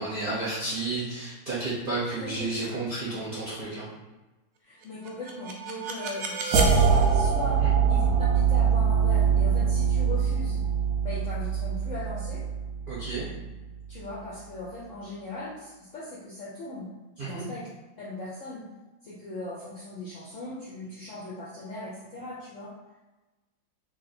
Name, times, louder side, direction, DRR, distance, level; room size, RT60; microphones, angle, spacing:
voice 1, 0.0-3.9 7.6-7.7 12.9-13.2 17.2-17.5, right 2 dB, 45° right, -9 dB, 0.6 m, -32 dB
voice 2, 2.2-2.8 4.6-7.6 7.9-8.1 8.3-10.6 11.0-12.4 13.9-16.9 17.2-17.7 18.0-18.6 19.0-22.7, left 2 dB, 65° left, -6 dB, 0.8 m, -39 dB
sound 1, 5.1-14.0, right 6 dB, 70° right, 1.0 m, -24 dB
2.8 x 2.7 x 4.1 m, 1.1 s
omnidirectional pair, 2.0 m